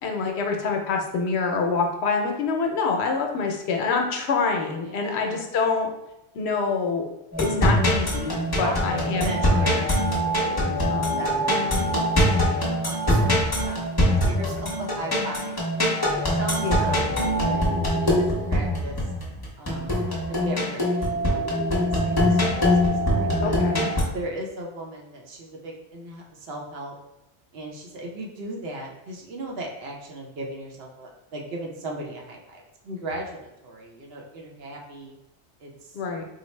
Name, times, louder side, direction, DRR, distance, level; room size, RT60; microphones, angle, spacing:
voice 1, 0.0-5.9 6.3-7.1 7.4-9.9 16.6-17.0 23.4-23.9 35.9-36.2, left 4 dB, 75° left, 3 dB, 0.8 m, -26 dB
voice 2, 4.8-5.5 8.5-11.9 12.4-15.6 16.1-19.0 19.6-23.6 24.1-27.0 27.5-35.1 35.6-36.0, right 1 dB, 65° right, -1 dB, 0.9 m, -37 dB
sound 1, 7.3-24.0, equal, 25° left, 0.7 m, -23 dB
4.0 x 2.0 x 3.1 m, 0.88 s
omnidirectional pair, 1.1 m